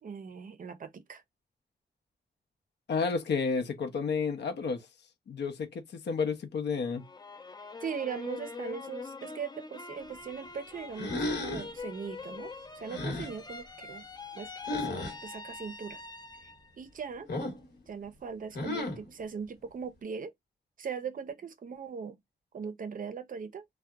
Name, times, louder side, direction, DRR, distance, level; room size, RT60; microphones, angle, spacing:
voice 1, 0.0-1.2 7.8-14.0 14.3-16.0 16.8-17.3 17.9-20.3 20.8-22.2 22.5-23.6, right 6 dB, 50° right, 0.5 m, -40 dB
voice 2, 2.9-4.9 5.3-7.0, left 5 dB, 85° left, 0.6 m, -31 dB
sound 1, 6.9-16.7 17.2-17.8, left 4 dB, 25° left, 0.4 m, -44 dB
sound 2, 11.0-11.7 12.9-13.3 14.7-15.1 17.3-17.7 18.5-19.1, left 2 dB, 65° left, 1.1 m, -34 dB
2.7 x 2.1 x 2.2 m
wide cardioid pair, 95°, 18 cm